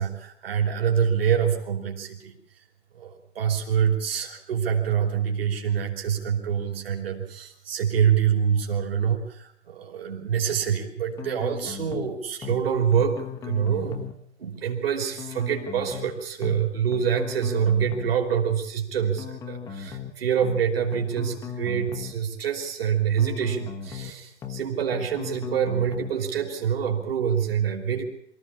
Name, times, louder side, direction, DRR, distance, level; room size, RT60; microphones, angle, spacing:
voice 1, 0.0-2.4 2.9-14.1 14.4-28.0, right 8 dB, 55° right, 3 dB, 3.4 m, -26 dB
sound 1, 11.2-12.1 12.4-12.6 12.9-14.2 15.2-16.1 16.4-16.6 16.9-18.2 19.2-20.1 20.4-20.6 20.9-22.2 23.2-24.1 24.4-24.6 24.9-26.2, left 7 dB, 10° left, 1.0 m, -37 dB
23.0 x 14.5 x 8.4 m, 0.70 s
figure-of-eight pair, 135°, 35 cm